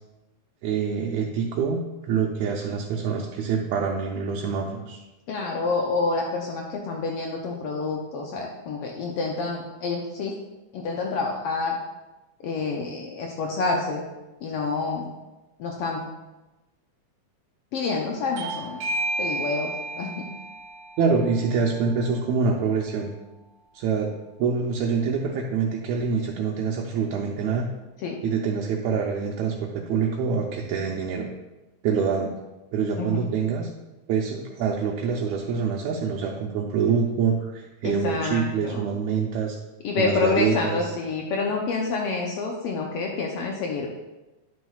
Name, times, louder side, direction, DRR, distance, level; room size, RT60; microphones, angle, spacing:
voice 1, 0.6-1.8 2.1-5.0 21.0-23.1 23.7-24.1 24.4-27.7 28.2-31.3 31.8-32.3 32.7-33.7 34.1-39.6 40.0-40.8, right 5 dB, 75° right, -1 dB, 1.8 m, -25 dB
voice 2, 5.3-10.4 10.7-11.8 12.4-14.0 14.4-15.1 15.6-16.1 17.7-18.8 19.2-20.3 28.0-28.2 33.0-33.3 37.8-39.0 39.8-44.0, left 4 dB, 90° left, 0 dB, 1.3 m, -28 dB
Bell / Doorbell, 18.4-23.5, right 2 dB, 60° right, 1.5 m, -34 dB
10.5 x 6.3 x 2.4 m, 1.1 s
omnidirectional pair, 3.5 m